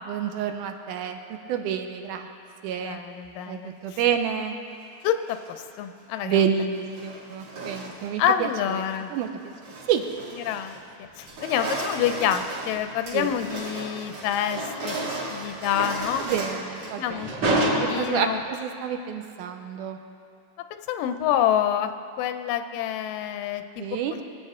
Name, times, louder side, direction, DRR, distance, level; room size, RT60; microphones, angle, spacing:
voice 1, 0.1-2.3 2.6-3.0 3.5-4.5 6.2-8.8 9.1-9.3 9.9-10.0 13.1-13.3 16.2-17.4 17.8-20.0 23.8-24.2, right 8 dB, 80° right, 6 dB, 2.1 m, -28 dB
voice 2, 2.8-3.7 5.0-5.4 5.8-6.4 8.2-9.1 10.4-10.8 11.2-16.2 17.0-17.5 17.9-18.4 20.7-21.9 22.2-23.8, left 10 dB, 90° left, 9 dB, 2.3 m, -27 dB
sound 1, 5.1-5.6 6.7-8.2 8.7-9.0 9.4-10.9 11.1-18.5, right 1 dB, 60° right, 3.1 m, -32 dB
23.0 x 8.7 x 3.6 m, 2.5 s
omnidirectional pair, 3.8 m